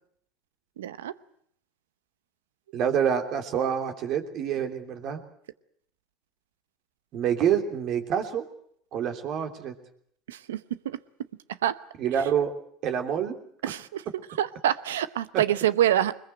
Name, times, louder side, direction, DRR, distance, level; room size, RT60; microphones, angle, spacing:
voice 1, 0.8-1.1 10.3-11.0 11.6-11.8 13.6-14.0 14.4-16.2, right 11 dB, 90° right, 15 dB, 0.9 m, -26 dB
voice 2, 2.7-5.2 7.1-8.5 8.9-9.7 12.0-12.5 12.8-13.4, right 8 dB, 55° right, 5 dB, 3.1 m, -27 dB
21.5 x 21.5 x 7.9 m, 0.67 s
hypercardioid pair, 85°, 0 cm